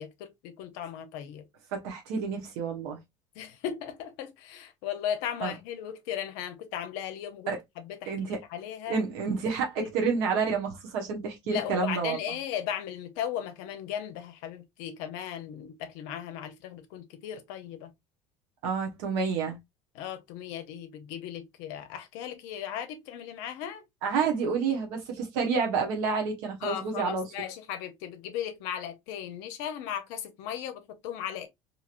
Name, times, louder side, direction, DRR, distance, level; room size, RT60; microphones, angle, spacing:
voice 1, 0.0-1.4 3.4-9.0 9.8-9.9 11.5-17.9 19.9-23.8 26.6-31.5, left 9 dB, 75° left, 0.6 m, -37 dB
voice 2, 1.7-3.0 5.4-5.5 7.5-7.6 8.1-8.4 8.9-12.2 18.6-19.6 24.0-27.3, right 5 dB, 80° right, 0.9 m, -29 dB
2.9 x 2.8 x 2.4 m
supercardioid pair, 100°, 13 cm